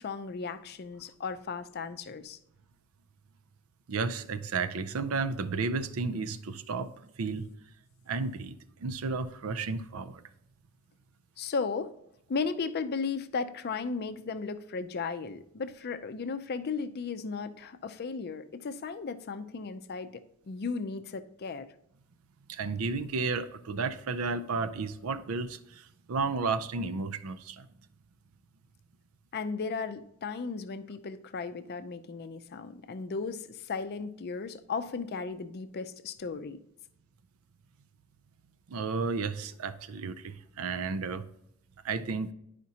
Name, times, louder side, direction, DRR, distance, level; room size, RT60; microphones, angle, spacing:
voice 1, 0.0-2.4 11.4-11.9 12.3-21.7 29.3-36.6, left 4 dB, 50° left, 0.4 m, -35 dB
voice 2, 3.9-7.5 8.1-10.2 22.5-27.7 38.7-41.3 41.8-42.3, right 4 dB, 80° right, 0.5 m, -33 dB
10.5 x 5.0 x 2.8 m
head